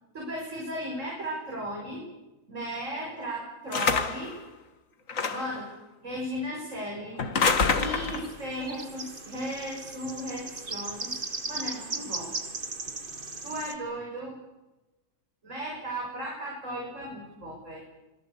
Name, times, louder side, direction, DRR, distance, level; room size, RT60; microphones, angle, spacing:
voice 1, 0.1-2.0 2.5-4.4 5.3-5.7 6.0-7.2 7.5-11.2 11.5-12.3 13.4-14.4 15.4-17.9, equal, 50° right, -2 dB, 7.1 m, -36 dB
sound 1, 3.7-4.3 5.1-5.6 7.2-8.3, left 5 dB, 60° left, 2.1 m, -26 dB
sound 2, 7.5-13.8, right 3 dB, 35° right, 1.9 m, -38 dB
27.0 x 21.5 x 8.4 m, 1.0 s
omnidirectional pair, 1.6 m